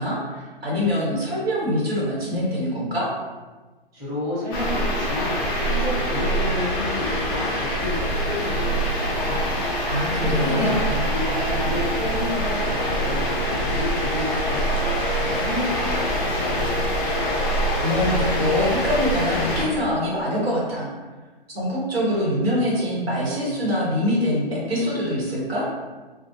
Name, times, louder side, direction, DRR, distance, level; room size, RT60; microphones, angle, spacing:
voice 1, 0.0-3.1 9.9-10.8 17.8-20.9 21.5-25.6, equal, 85° right, -5 dB, 1.1 m, -24 dB
voice 2, 3.9-9.7 10.2-14.9 15.3-16.9, left 1 dB, 10° right, -11 dB, 0.8 m, -31 dB
sound 1, 4.5-19.7, equal, 25° left, 0.4 m, -24 dB
2.4 x 2.1 x 2.8 m, 1.3 s
hypercardioid pair, 130°, 30 cm